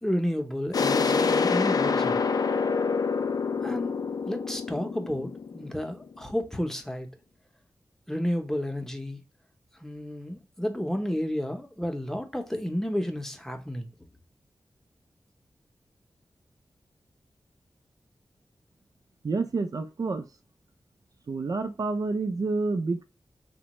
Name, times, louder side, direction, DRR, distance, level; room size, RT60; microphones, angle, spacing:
voice 1, 0.0-2.2 3.6-4.0 4.2-7.1 8.1-9.2 9.8-13.9, equal, 5° left, 0.7 m, -31 dB
sound 1, 0.7-6.2, left 5 dB, 60° left, 0.4 m, -26 dB
voice 2, 19.2-20.2 21.3-23.0, right 3 dB, 55° right, 0.4 m, -28 dB
3.4 x 2.2 x 2.9 m
cardioid pair, 60°, 7 cm